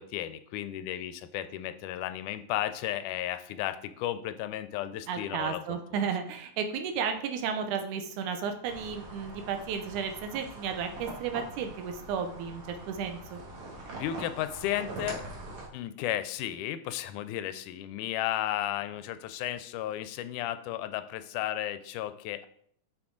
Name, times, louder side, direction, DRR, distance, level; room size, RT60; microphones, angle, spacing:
voice 1, 0.0-6.0 14.0-15.2 15.7-22.5, left 12 dB, 90° left, 12 dB, 2.1 m, -34 dB
voice 2, 5.1-13.4, right 7 dB, 80° right, 7 dB, 2.2 m, -33 dB
sound 1, 8.6-15.7, right 2 dB, 50° right, 2.3 m, -43 dB
6.3 x 6.0 x 3.8 m, 0.65 s
omnidirectional pair, 3.5 m